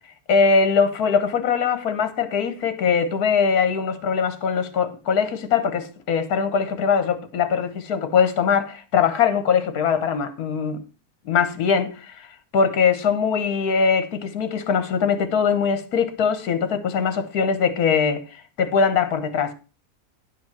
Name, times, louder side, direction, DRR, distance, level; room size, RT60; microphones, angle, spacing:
voice 1, 0.3-10.8 11.3-12.3 12.5-19.5, left 6 dB, 65° left, 1.6 m, -21 dB
10.5 x 5.2 x 5.8 m
omnidirectional pair, 1.8 m